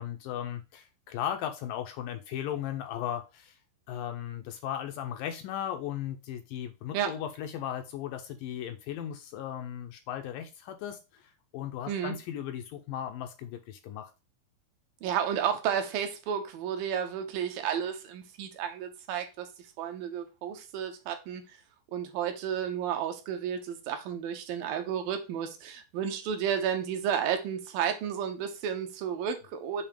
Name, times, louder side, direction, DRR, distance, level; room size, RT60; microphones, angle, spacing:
voice 1, 0.0-3.6 3.9-14.1, left 10 dB, 80° left, 2.1 m, -36 dB
voice 2, 15.0-19.5 19.8-21.4 21.9-29.8, right 8 dB, 75° right, 2.5 m, -32 dB
7.2 x 2.7 x 4.9 m
omnidirectional pair, 4.2 m